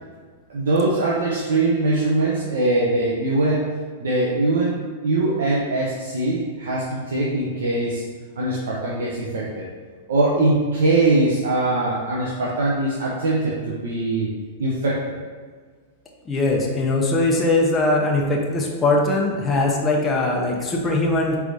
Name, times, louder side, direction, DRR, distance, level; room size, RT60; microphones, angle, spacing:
voice 1, 0.5-3.7 4.0-8.0 8.4-9.6 10.1-14.3 14.6-15.2, right 2 dB, 85° right, -6 dB, 0.7 m, -22 dB
voice 2, 16.3-21.4, left 2 dB, 20° left, -2 dB, 0.7 m, -21 dB
4.6 x 3.4 x 2.6 m, 1.5 s
hypercardioid pair, 125°, 0 cm